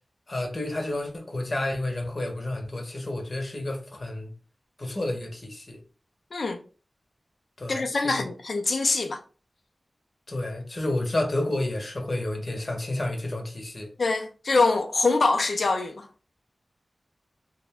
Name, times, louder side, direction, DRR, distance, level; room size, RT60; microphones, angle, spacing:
voice 1, 0.3-4.3 4.8-5.8 7.6-8.3 10.3-13.9, left 1 dB, 50° left, 0.7 m, -30 dB
voice 2, 7.7-9.2 14.0-16.1, left 3 dB, 75° left, 0.3 m, -24 dB
2.4 x 2.0 x 3.4 m
wide cardioid pair, 65°, 0 cm